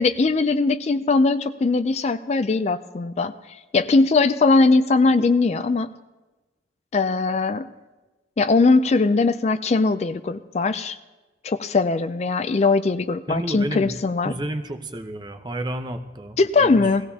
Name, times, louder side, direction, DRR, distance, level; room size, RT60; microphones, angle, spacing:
voice 1, 0.0-3.3 3.7-5.9 6.9-7.7 8.4-11.0 11.4-14.3 16.4-17.0, left 3 dB, 35° left, 11 dB, 0.4 m, -20 dB
voice 2, 13.3-13.9 14.3-16.8, right 1 dB, 25° right, 7 dB, 0.8 m, -31 dB
20.0 x 16.0 x 2.8 m, 1.2 s
head